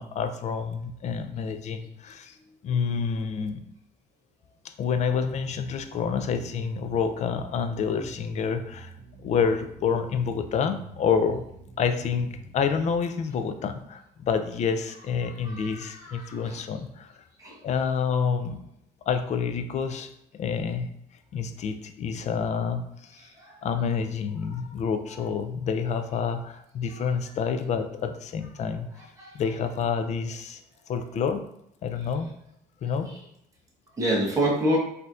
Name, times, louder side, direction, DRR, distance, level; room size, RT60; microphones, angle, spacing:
voice 1, 0.0-2.3 2.6-3.6 4.8-8.9 9.2-11.4 11.8-17.1 17.6-18.6 19.1-20.1 20.3-20.9 21.3-22.9 23.6-28.9 29.3-30.6 30.9-31.4 31.8-32.3 32.8-33.1, left 6 dB, 45° left, 8 dB, 0.4 m, -28 dB
sound 1, 5.0-13.0, right 3 dB, 40° right, 0.7 m, -47 dB
voice 2, 15.2-16.6 17.4-17.6 23.2-23.6 24.4-24.7 25.1-25.2 26.9-27.1 29.0-29.3 32.8-33.2 34.0-34.8, right 1 dB, 20° right, -4 dB, 1.1 m, -29 dB
4.1 x 2.7 x 2.4 m, 0.77 s
cardioid pair, 110°, 17 cm